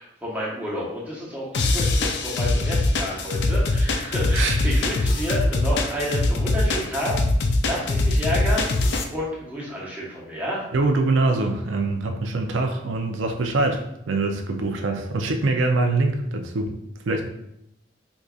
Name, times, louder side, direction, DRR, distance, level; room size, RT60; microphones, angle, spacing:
voice 1, 0.0-7.2 7.6-8.7 9.1-10.6, equal, 10° right, -6 dB, 0.9 m, -30 dB
sound 1, 1.5-9.0, left 2 dB, 60° left, 0.4 m, -22 dB
voice 2, 4.3-4.9 10.7-16.7 17.1-17.3, right 3 dB, 85° right, 4 dB, 0.5 m, -24 dB
4.6 x 2.6 x 2.3 m, 0.80 s
head